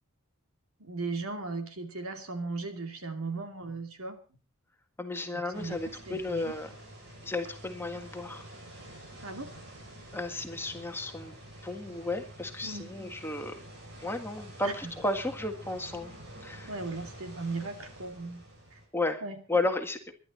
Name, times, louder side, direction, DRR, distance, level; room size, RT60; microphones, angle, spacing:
voice 1, 0.8-4.2 5.3-6.5 9.2-9.5 12.6-12.9 14.6-14.9 16.7-18.4 18.7-18.8 19.2-19.4, right 3 dB, 75° right, 5 dB, 2.8 m, -37 dB
voice 2, 5.0-6.7 7.2-8.4 10.1-11.3 11.6-13.5 14.0-16.1 16.4-16.7 18.9-19.2 19.5-20.0, left 2 dB, 10° left, 5 dB, 1.7 m, -33 dB
sound 1, 5.5-18.9, right 1 dB, 55° right, 7.4 m, -48 dB
23.0 x 11.5 x 4.2 m, 0.37 s
head